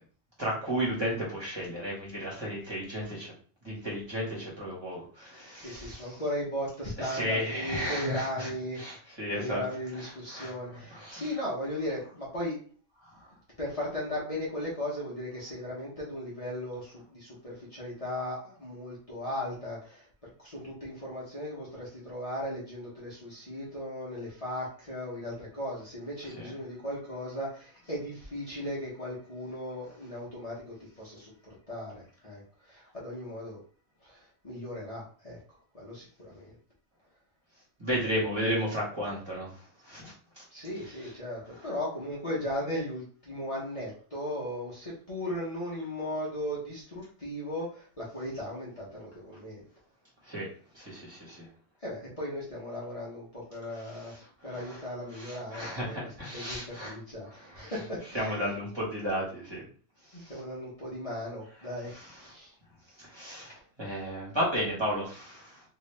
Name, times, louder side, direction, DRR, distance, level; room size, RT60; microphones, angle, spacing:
voice 1, 0.4-3.3 3.6-6.1 7.0-8.5 8.8-9.6 10.3-11.3 13.0-13.2 26.4-26.5 37.8-40.4 50.2-50.5 50.7-51.5 54.5-54.8 55.1-56.9 57.5-57.7 58.1-59.6 61.9-62.1 63.0-65.6, equal, 25° right, -6 dB, 1.5 m, -34 dB
voice 2, 5.6-9.0 9.3-12.6 13.6-20.1 20.4-33.6 34.0-35.4 35.7-36.5 40.5-49.6 51.8-54.1 54.4-58.5 60.1-62.5, left 1 dB, 35° left, -7 dB, 1.1 m, -37 dB
3.2 x 2.8 x 3.3 m, 0.43 s
omnidirectional pair, 1.1 m